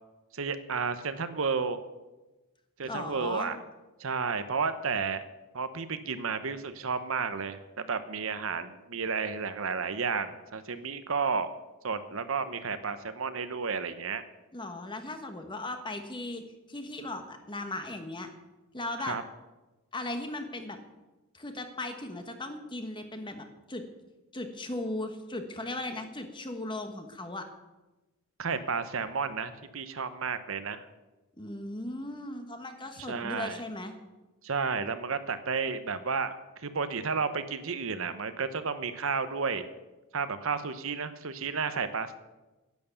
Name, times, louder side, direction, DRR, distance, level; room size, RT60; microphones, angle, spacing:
voice 1, 0.3-1.8 2.8-3.6 4.0-5.2 5.5-11.5 11.8-14.2 19.0-19.2 28.4-30.9 33.1-33.6 34.4-39.7 40.1-42.1, right 5 dB, 65° right, 11 dB, 0.8 m, -32 dB
voice 2, 2.8-3.5 14.5-16.4 16.7-18.3 18.7-19.2 19.9-20.8 21.3-23.8 24.3-27.5 31.4-33.9, left 2 dB, 20° left, 6 dB, 1.3 m, -37 dB
10.5 x 9.4 x 7.0 m, 1.1 s
head